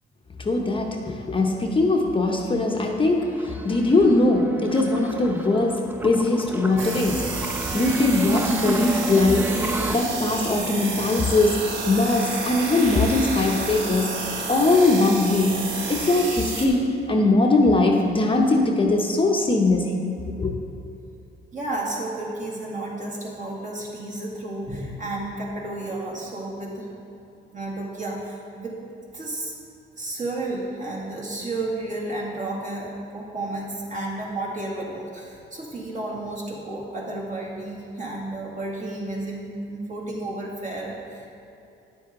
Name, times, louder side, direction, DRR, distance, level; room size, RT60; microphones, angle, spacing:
voice 1, 0.4-7.3 7.7-20.0 20.4-20.5, left 2 dB, 25° left, 1 dB, 0.8 m, -21 dB
sound 1, 3.2-10.0, right 2 dB, 10° right, 0.3 m, -30 dB
sound 2, 6.8-16.7, right 3 dB, 75° right, 1.2 m, -31 dB
voice 2, 21.5-26.9 27.5-28.8 29.1-29.5 30.0-41.3, right 2 dB, 40° right, -4 dB, 2.1 m, -32 dB
10.0 x 7.7 x 3.7 m, 2.7 s
cardioid pair, 90°, 20 cm